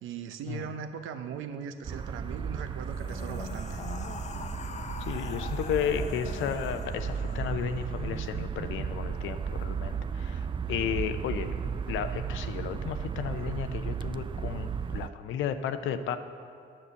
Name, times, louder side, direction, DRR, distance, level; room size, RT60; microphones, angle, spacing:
voice 1, 0.0-3.8, right 7 dB, 85° right, 9 dB, 0.7 m, -39 dB
sound 1, 1.8-15.1, right 6 dB, 25° right, 0.3 m, -34 dB
sound 2, 2.8-8.1, left 6 dB, 35° left, 0.5 m, -43 dB
voice 2, 5.1-11.6 11.9-16.2, left 8 dB, 85° left, 10 dB, 0.6 m, -33 dB
10.0 x 6.7 x 6.8 m, 2.3 s
cardioid pair, 90°, 20 cm